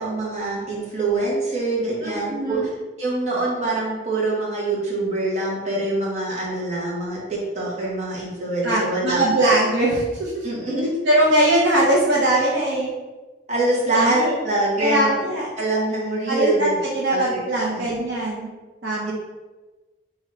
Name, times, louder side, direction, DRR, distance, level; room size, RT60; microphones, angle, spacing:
voice 1, 0.0-2.6 3.0-9.5 10.4-10.9 13.5-15.1 15.6-16.7 17.1-17.4 17.7-17.9 19.0-19.1, right 2 dB, 40° right, -6 dB, 1.3 m, -24 dB
voice 2, 2.0-2.7 8.6-10.5 11.1-12.9 13.9-14.4 14.8-15.5 16.3-18.5 18.8-19.1, right 1 dB, 70° right, -4 dB, 0.7 m, -21 dB
3.8 x 2.8 x 4.3 m, 1.2 s
head